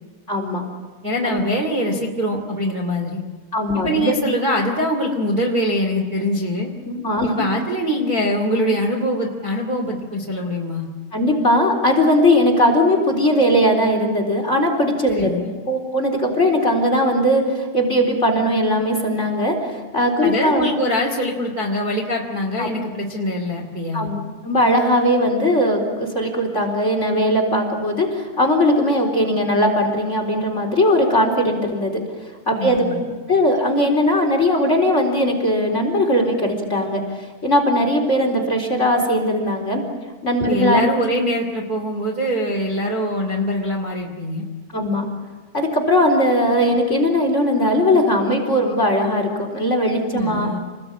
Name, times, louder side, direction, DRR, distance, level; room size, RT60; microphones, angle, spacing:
voice 1, 0.3-0.6 1.2-1.4 3.5-4.1 6.9-7.5 11.1-15.3 15.7-20.7 22.6-22.7 23.9-32.0 32.5-37.0 37.4-39.8 40.2-40.9 44.7-45.0 45.5-50.5, left 1 dB, 20° left, 4 dB, 3.9 m, -19 dB
voice 2, 1.0-3.2 3.8-6.7 7.2-10.9 15.1-15.5 20.2-24.1 32.5-33.0 40.5-44.4 50.1-50.6, equal, 25° right, 1 dB, 2.7 m, -23 dB
29.5 x 20.5 x 8.8 m, 1.4 s
omnidirectional pair, 4.5 m